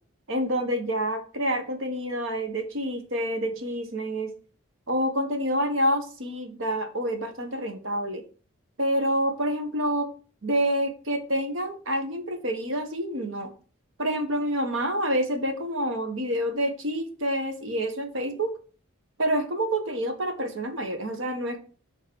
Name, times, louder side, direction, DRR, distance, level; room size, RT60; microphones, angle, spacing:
voice 1, 0.3-4.3 4.9-8.2 8.8-10.1 10.4-13.5 14.0-18.5 19.2-21.6, equal, 75° right, 6 dB, 1.4 m, -27 dB
6.9 x 4.0 x 6.3 m, 0.38 s
head